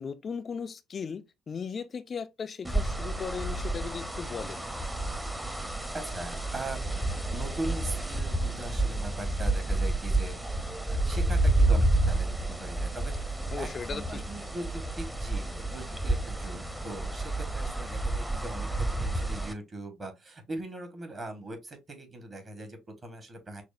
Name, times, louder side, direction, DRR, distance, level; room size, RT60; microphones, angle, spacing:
voice 1, 0.0-4.6 13.5-14.2, left 6 dB, 40° left, 0.4 m, -37 dB
sound 1, 2.6-19.5, right 2 dB, 10° right, 0.8 m, -30 dB
voice 2, 5.9-6.9 7.3-10.4 10.9-23.6, right 2 dB, 35° right, 1.5 m, -40 dB
5.9 x 2.1 x 2.6 m
hypercardioid pair, 50°, 0 cm